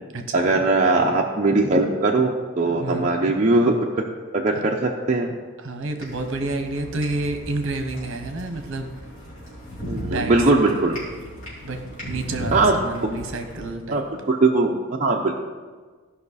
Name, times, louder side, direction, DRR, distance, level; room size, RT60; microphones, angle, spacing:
voice 1, 0.3-3.8 4.3-5.3 9.9-11.0 12.5-12.8 13.9-15.4, right 2 dB, 35° right, -1 dB, 0.6 m, -20 dB
voice 2, 2.8-3.1 5.6-8.9 10.0-10.3 10.6-10.9 11.6-14.0, right 2 dB, 60° right, 6 dB, 1.0 m, -29 dB
sound 1, 6.0-13.6, equal, 35° left, 3.4 m, -36 dB
14.5 x 5.6 x 4.1 m, 1.4 s
head